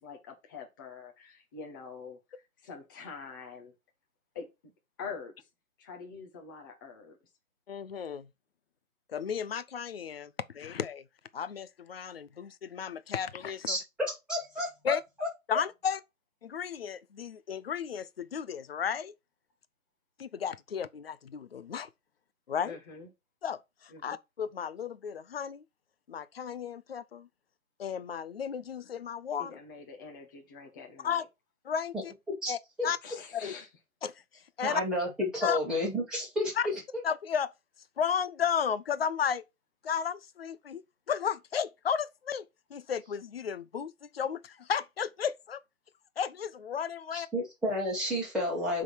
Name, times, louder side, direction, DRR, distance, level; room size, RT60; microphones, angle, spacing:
voice 1, 0.0-2.2 2.6-3.7 4.3-4.5 5.0-5.5 5.8-7.2 22.6-23.1 23.9-24.0 29.4-31.2 33.0-33.7, left 5 dB, 15° left, 0.9 m, -45 dB
voice 2, 7.7-8.3 9.1-11.0 11.3-13.8 14.8-15.0 15.5-16.0 16.4-19.1 20.2-21.9 22.5-22.8 23.4-25.6 26.1-27.3 27.8-29.6 31.0-31.2 31.6-32.1 32.5-32.6 32.8-33.0 33.3-33.5 34.0-34.1 34.6-34.8 35.4-35.6 36.6-36.7 37.0-37.5 38.0-39.4 39.8-40.8 41.1-42.4 42.7-45.6 46.2-47.3, left 7 dB, 45° left, 0.5 m, -33 dB
voice 3, 14.3-15.3 32.4-32.5 32.8-32.9 34.6-36.5 47.1-48.8, left 1 dB, ahead, 2.5 m, -31 dB
7.7 x 3.7 x 4.4 m
figure-of-eight pair, 145°, 41 cm